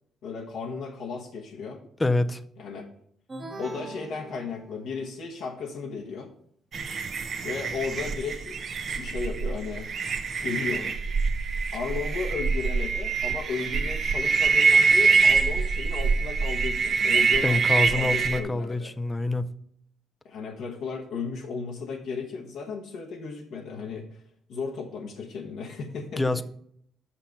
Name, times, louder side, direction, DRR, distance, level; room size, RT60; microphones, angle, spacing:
voice 1, 0.2-1.8 2.6-2.8 3.6-6.3 7.4-8.7 9.0-9.9 10.4-11.0 11.7-18.9 20.2-24.2 24.5-26.4, left 5 dB, 80° left, 1.2 m, -35 dB
voice 2, 2.0-2.4 17.4-19.5 26.2-26.4, left 2 dB, 20° left, 0.5 m, -26 dB
sound 1, 3.3-5.1, right 2 dB, 30° right, 1.3 m, -41 dB
sound 2, 6.7-18.4, right 4 dB, 55° right, 0.8 m, -24 dB
5.8 x 5.8 x 6.8 m
cardioid pair, 90°, 0 cm